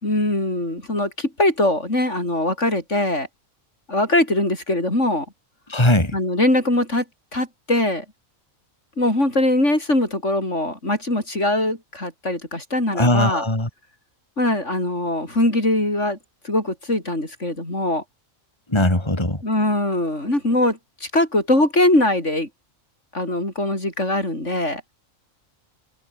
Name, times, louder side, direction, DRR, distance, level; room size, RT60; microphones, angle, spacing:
voice 1, 0.0-3.3 3.9-5.3 6.1-7.0 7.3-8.0 9.0-13.4 14.4-16.2 16.4-18.0 19.4-22.5 23.1-24.8, left 1 dB, 60° left, 7.8 m, -21 dB
voice 2, 5.7-6.2 12.9-13.7 18.7-19.4, left 1 dB, 20° left, 3.9 m, -19 dB
omnidirectional pair, 1.4 m